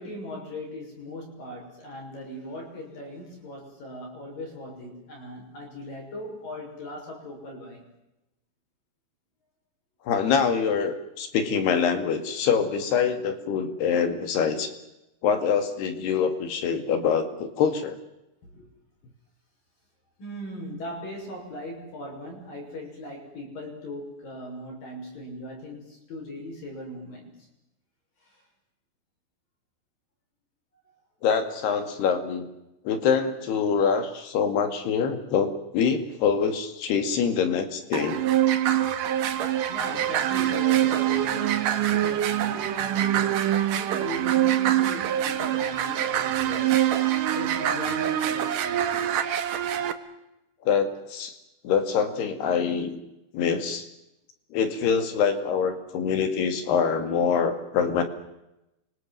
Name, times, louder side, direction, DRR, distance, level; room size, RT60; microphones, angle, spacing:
voice 1, 0.0-7.8 18.4-18.7 20.2-27.3 28.2-28.4 39.7-46.9 47.3-49.1, left 1 dB, 50° left, 1 dB, 8.3 m, -39 dB
voice 2, 10.1-14.7 15.2-18.0 31.2-32.5 32.9-38.2 50.7-51.4 51.6-53.0 53.3-53.9 54.5-58.0, left 6 dB, 70° left, 8 dB, 4.3 m, -25 dB
sound 1, 37.9-49.9, right 11 dB, 60° right, 2.6 m, -24 dB
29.0 x 25.0 x 7.6 m, 0.91 s
omnidirectional pair, 4.9 m